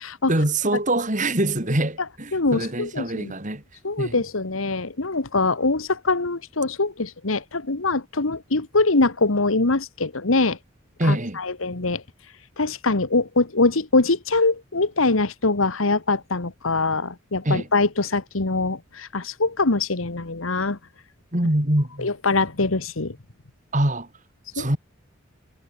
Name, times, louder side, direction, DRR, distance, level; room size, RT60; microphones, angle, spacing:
voice 1, 0.3-3.6 4.0-4.2 11.0-11.4 17.4-17.7 21.3-22.1 23.7-24.1 24.5-24.8, right 1 dB, 40° right, 3.6 m, -24 dB
voice 2, 2.3-3.3 3.8-10.6 11.1-12.0 12.6-20.8 22.0-23.1 24.6-24.7, left 3 dB, 85° left, 1.6 m, -23 dB
head